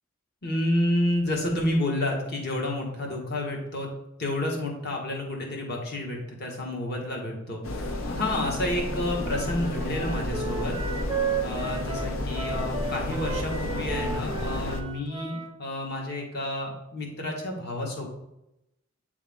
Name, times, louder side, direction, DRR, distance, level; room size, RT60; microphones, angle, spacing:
voice 1, 0.4-3.9 4.2-10.7 11.4-18.0, left 1 dB, 55° left, 0 dB, 1.3 m, -30 dB
sound 1, 7.6-14.8, left 1 dB, 85° left, 0.7 m, -31 dB
Wind instrument woodwind instrument, 9.2-15.5, right 5 dB, 20° right, 0.5 m, -34 dB
8.7 x 3.5 x 3.5 m, 0.88 s
head